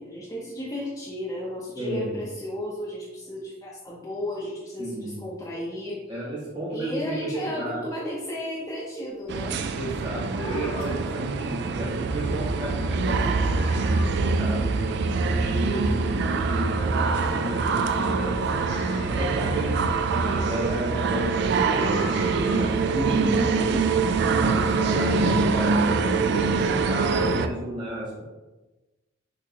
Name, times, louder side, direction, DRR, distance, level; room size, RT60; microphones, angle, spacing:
voice 1, 0.0-6.0 6.7-9.6, left 1 dB, 15° left, -7 dB, 0.7 m, -34 dB
voice 2, 1.7-2.2 4.8-5.2 6.1-7.9 9.7-18.6 19.0-19.8 20.1-24.0 24.4-28.2, right 1 dB, 25° right, -7 dB, 0.9 m, -32 dB
sound 1, 9.3-27.5, right 4 dB, 60° right, 0.3 m, -24 dB
sound 2, 10.3-11.2 12.3-12.4 12.8-12.9 13.2-13.3 13.5-14.3 14.8-14.9 18.6-19.9 21.0-21.1 21.8-22.8 23.1-23.2, left 2 dB, 75° left, 1.3 m, -41 dB
6.2 x 3.0 x 2.8 m, 1.1 s
head